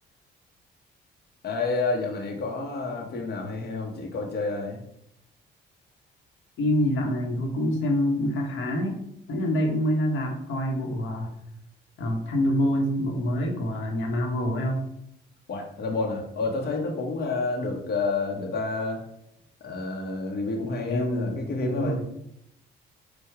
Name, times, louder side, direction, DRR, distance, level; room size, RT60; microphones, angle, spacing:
voice 1, 1.4-4.8 15.5-19.0 19.6-22.0, left 3 dB, 55° left, 0 dB, 0.9 m, -29 dB
voice 2, 6.6-9.0 9.3-11.3 12.0-14.8 20.6-21.4 21.8-22.0, equal, 75° left, 1 dB, 1.0 m, -26 dB
4.7 x 2.2 x 4.6 m, 0.76 s
cardioid pair, 90°, 20 cm